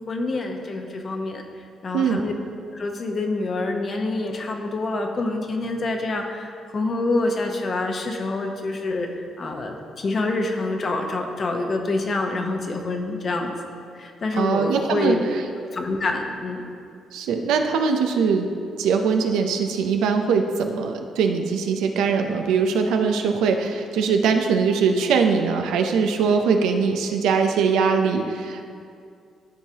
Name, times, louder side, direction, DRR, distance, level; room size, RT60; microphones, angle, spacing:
voice 1, 0.1-1.4 1.8-2.3 2.7-9.1 9.4-13.5 13.9-15.2 15.7-16.7, left 2 dB, 45° left, 3 dB, 0.9 m, -26 dB
voice 2, 14.3-15.4 17.1-18.5 18.8-28.6, right 5 dB, 90° right, 5 dB, 0.6 m, -21 dB
13.0 x 4.7 x 2.9 m, 2.4 s
cardioid pair, 90°, 0 cm